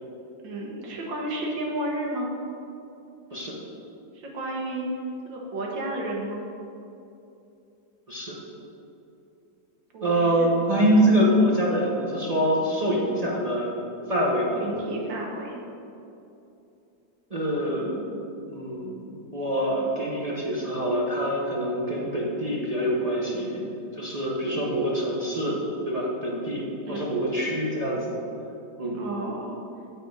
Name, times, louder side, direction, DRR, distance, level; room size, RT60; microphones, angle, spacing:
voice 1, 0.4-2.3 4.1-4.9 5.3-6.4 9.9-10.7 14.6-15.6 26.9-27.2 29.0-29.6, right 1 dB, 70° right, -1 dB, 1.8 m, -32 dB
voice 2, 10.0-13.7 14.1-14.6 17.3-18.0 18.5-23.6 24.0-28.1 28.8-29.0, equal, 35° right, -4 dB, 0.6 m, -25 dB
9.0 x 4.2 x 5.2 m, 2.8 s
omnidirectional pair, 2.1 m